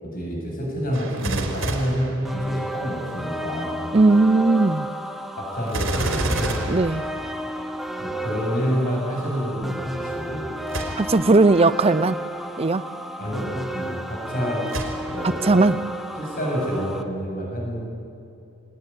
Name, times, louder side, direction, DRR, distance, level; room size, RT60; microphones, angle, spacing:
voice 1, 0.0-3.9 5.4-6.6 8.0-10.5 13.2-14.7 15.1-15.6 16.2-17.8, equal, 40° left, 7.4 m, -28 dB
Gunshot gunfire, 0.9-2.9 5.7-7.8 10.7-11.3 12.0-12.1 14.7-15.5 16.0-16.1, right 2 dB, 60° right, 4.0 m, -29 dB
sound 1, 2.2-17.0, equal, ahead, 1.2 m, -32 dB
voice 2, 3.9-4.9 6.7-7.0 11.0-12.2 12.6-12.8 15.2-15.9, right 3 dB, 25° right, 0.5 m, -18 dB
22.5 x 19.5 x 10.0 m
head